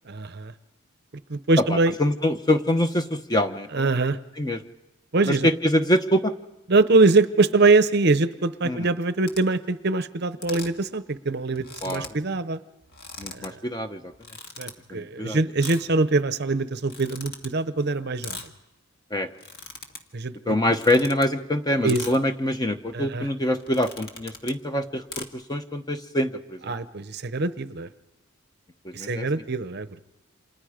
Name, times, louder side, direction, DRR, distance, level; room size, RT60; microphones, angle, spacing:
voice 1, 0.1-0.5 1.3-2.0 3.7-4.2 5.1-5.5 6.7-12.6 13.3-13.6 14.6-18.5 20.1-20.5 21.8-22.2 22.9-23.3 26.7-27.9 28.9-30.0, right 3 dB, 50° right, 13 dB, 0.8 m, -23 dB
voice 2, 1.7-3.9 4.4-4.6 5.3-6.3 8.6-8.9 11.8-12.1 13.2-14.0 14.9-15.4 19.1-19.3 20.5-26.7 28.8-29.3, left 1 dB, 20° left, 7 dB, 1.0 m, -25 dB
sound 1, 9.2-9.4 10.4-10.8 11.2-11.3 11.5-12.1 12.8-13.5 14.1-14.7 15.6-15.8 16.8-17.5 18.2-18.5 19.3-20.0 20.6-21.3 21.9-22.2 22.9-23.1 23.5-24.6 25.1-25.2, left 4 dB, 50° left, 1.9 m, -39 dB
30.0 x 27.0 x 5.1 m, 0.98 s
head